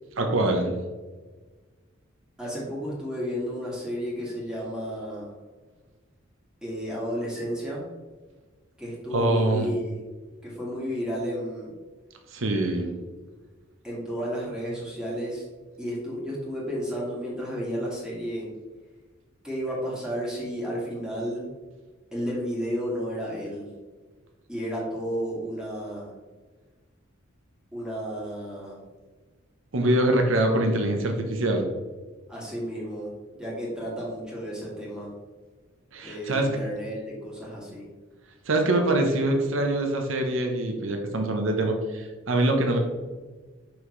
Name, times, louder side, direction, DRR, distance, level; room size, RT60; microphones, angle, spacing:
voice 1, 0.2-0.7 9.1-9.7 12.3-12.9 29.7-31.7 35.9-36.6 38.5-42.8, right 1 dB, 75° right, 4 dB, 0.8 m, -24 dB
voice 2, 2.4-5.3 6.6-7.8 8.8-10.0 10.4-11.7 13.8-15.4 15.8-18.5 19.4-21.5 22.1-23.7 24.5-26.1 27.7-28.8 32.3-33.1 33.4-35.1 36.0-37.9, equal, 5° right, -6 dB, 1.9 m, -32 dB
6.0 x 5.7 x 3.2 m, 1.3 s
head